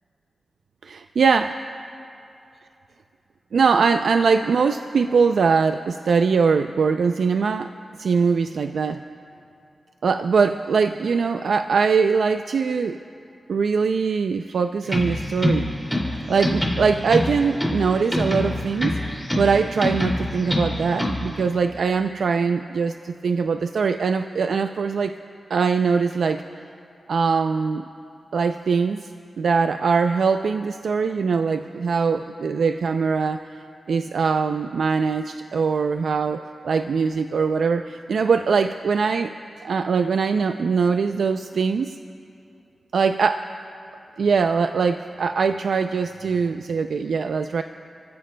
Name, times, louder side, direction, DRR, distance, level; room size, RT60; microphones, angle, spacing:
voice 1, 1.2-1.5 3.5-7.7 8.0-9.0 10.0-13.0 13.5-15.7 16.3-19.0 19.3-25.1 25.5-26.4 27.1-27.9 28.3-29.1 29.4-33.4 33.9-39.3 39.6-42.0 42.9-43.4 44.2-47.6, right 5 dB, 80° right, 8 dB, 0.3 m, -22 dB
sound 1, 14.8-21.4, left 1 dB, 5° right, 2.4 m, -26 dB
29.5 x 15.5 x 2.2 m, 2.6 s
wide cardioid pair, 150°, 0 cm